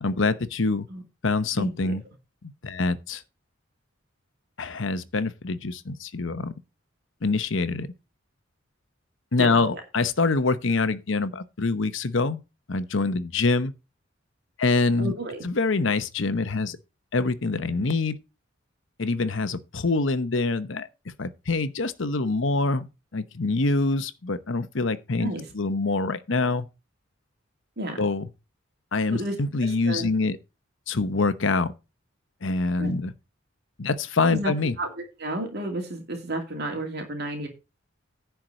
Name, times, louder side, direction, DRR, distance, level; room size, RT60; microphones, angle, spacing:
voice 1, 0.0-0.9 1.2-2.0 2.6-3.2 4.6-6.5 7.2-7.9 9.3-12.4 12.7-13.7 14.6-15.1 15.4-16.8 17.1-18.2 19.0-20.9 21.2-22.9 23.1-25.3 25.5-26.7 28.0-28.3 28.9-30.4 30.9-31.7 32.4-33.1 33.8-34.8, left 3 dB, 65° left, 0.9 m, -25 dB
voice 2, 1.6-1.9 9.4-9.8 15.0-15.5 25.2-25.5 27.8-28.1 29.1-30.1 32.8-32.9 34.3-34.9 35.2-37.5, right 1 dB, 55° right, 2.4 m, -32 dB
10.5 x 4.6 x 6.6 m
head